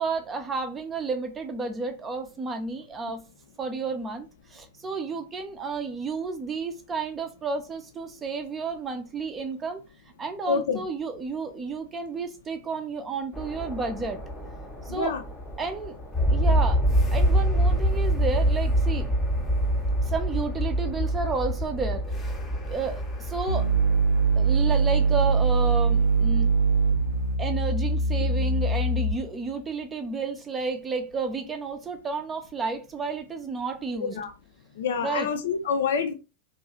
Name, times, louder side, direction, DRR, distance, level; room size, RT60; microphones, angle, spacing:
voice 1, 0.0-3.2 3.6-9.8 10.2-14.2 14.9-15.1 15.6-15.9 16.3-16.8 17.1-19.1 20.0-22.4 22.7-23.7 24.4-26.5 27.4-34.2 35.0-35.3, right 4 dB, 20° right, 0.5 m, -31 dB
voice 2, 10.5-10.8 14.9-15.2 33.9-34.3 34.8-36.1, left 5 dB, 60° left, 0.5 m, -27 dB
sound 1, 13.3-27.3, equal, 15° left, 0.7 m, -26 dB
sound 2, 23.5-29.4, right 4 dB, 85° right, 0.4 m, -22 dB
2.7 x 2.3 x 3.0 m
figure-of-eight pair, 90°, 0 cm